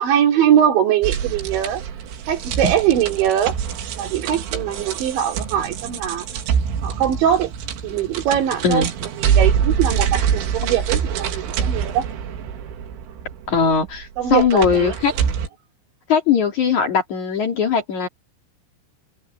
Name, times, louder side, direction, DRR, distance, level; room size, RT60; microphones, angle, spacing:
voice 1, 0.0-1.8 2.3-3.6 4.0-6.3 6.8-7.5 7.8-8.9 9.2-12.0 14.2-15.0, right 10 dB, 70° right, 5.1 m, -21 dB
sound 1, 1.0-15.5, right 7 dB, 90° right, 4.8 m, -25 dB
voice 2, 13.5-15.1 16.1-18.1, left 6 dB, 45° left, 3.2 m, -19 dB
omnidirectional pair, 5.5 m